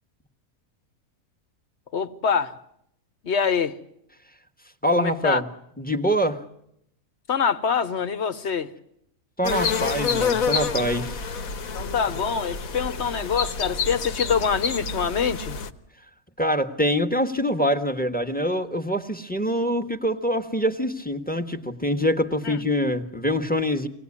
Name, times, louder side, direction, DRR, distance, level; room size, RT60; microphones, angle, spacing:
voice 1, 1.9-2.5 3.2-3.8 5.0-5.4 7.3-8.7 11.7-15.6 22.4-22.6, left 6 dB, 50° left, 1.4 m, -25 dB
voice 2, 4.8-5.5 5.8-6.4 9.4-11.2 16.4-23.9, equal, 5° left, 1.3 m, -24 dB
sound 1, 9.4-15.7, left 6 dB, 70° left, 1.6 m, -28 dB
25.5 x 18.5 x 9.8 m
omnidirectional pair, 1.5 m